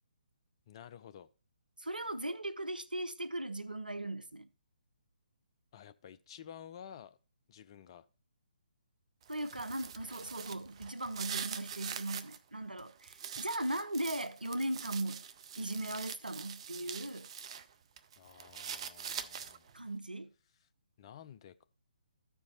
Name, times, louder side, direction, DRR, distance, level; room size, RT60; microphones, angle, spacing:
voice 1, 0.7-1.3 5.7-7.2 7.5-8.1 18.2-19.7 21.0-21.6, left 9 dB, 35° left, 0.5 m, -52 dB
voice 2, 1.8-4.5 9.3-15.2 15.6-17.3 19.7-20.3, right 1 dB, 90° right, 0.7 m, -38 dB
sound 1, 9.2-12.4 12.8-17.6 18.0-19.7, right 7 dB, 40° right, 0.6 m, -44 dB
13.5 x 4.6 x 4.3 m
figure-of-eight pair, 135°, 5 cm